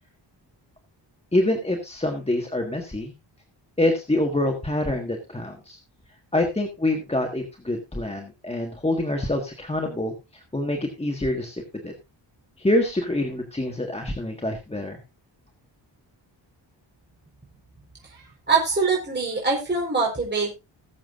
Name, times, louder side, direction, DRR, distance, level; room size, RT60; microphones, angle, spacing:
voice 1, 1.3-3.1 3.8-5.8 6.3-11.9 12.6-15.0, left 1 dB, 15° left, 2 dB, 1.6 m, -26 dB
voice 2, 18.1-20.5, right 4 dB, 25° right, -3 dB, 4.2 m, -24 dB
20.0 x 7.5 x 2.5 m, 0.25 s
wide cardioid pair, 135°, 44 cm